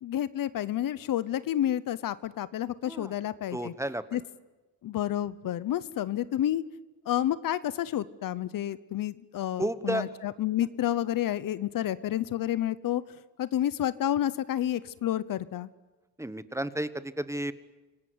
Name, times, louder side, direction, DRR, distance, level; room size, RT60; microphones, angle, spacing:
voice 1, 0.0-3.7 4.1-4.2 4.8-6.6 7.1-13.0 13.4-15.7, left 12 dB, 70° left, 16 dB, 0.9 m, -30 dB
voice 2, 3.5-4.2 9.6-10.1 16.2-17.5, right 1 dB, 10° right, 13 dB, 1.2 m, -32 dB
27.5 x 18.0 x 9.7 m, 1.2 s
cardioid pair, 90°, 35 cm